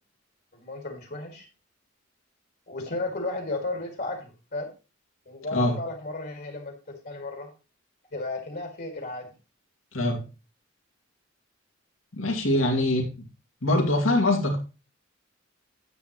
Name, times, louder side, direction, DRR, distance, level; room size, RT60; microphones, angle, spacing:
voice 1, 0.5-1.5 2.7-4.7 5.3-6.7 7.0-7.5 8.1-9.3 12.5-13.0, left 2 dB, 50° left, 2.0 m, -34 dB
voice 2, 12.1-13.0 13.6-14.6, left 1 dB, 90° left, 2.4 m, -23 dB
9.3 x 8.5 x 3.0 m
head